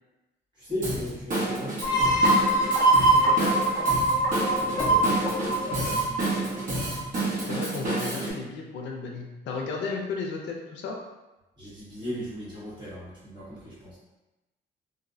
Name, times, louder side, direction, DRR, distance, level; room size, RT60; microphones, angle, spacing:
voice 1, 0.6-2.1 4.6-6.1 11.6-14.0, equal, 25° right, -11 dB, 1.4 m, -37 dB
Drum kit / Drum, 0.8-8.3, right 2 dB, 45° right, 0.9 m, -30 dB
sound 1, 1.8-7.3, right 1 dB, 20° left, 0.4 m, -23 dB
voice 2, 3.1-3.6 7.5-11.0, left 4 dB, 80° left, 1 dB, 0.4 m, -34 dB
2.6 x 2.0 x 2.5 m, 1.0 s
wide cardioid pair, 165°, 18 cm